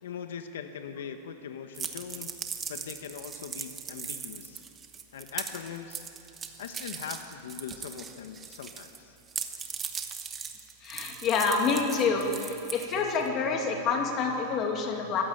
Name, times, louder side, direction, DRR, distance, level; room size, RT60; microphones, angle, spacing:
voice 1, 0.0-2.4 2.7-4.6 5.1-6.0 6.6-9.2, left 7 dB, 90° left, 7 dB, 1.5 m, -41 dB
sound 1, 1.7-9.0 9.3-13.3, right 6 dB, 15° right, 1.0 m, -39 dB
voice 2, 10.8-15.2, left 5 dB, 25° left, 2 dB, 2.2 m, -27 dB
23.0 x 15.0 x 8.9 m, 2.7 s
supercardioid pair, 175°, 0 cm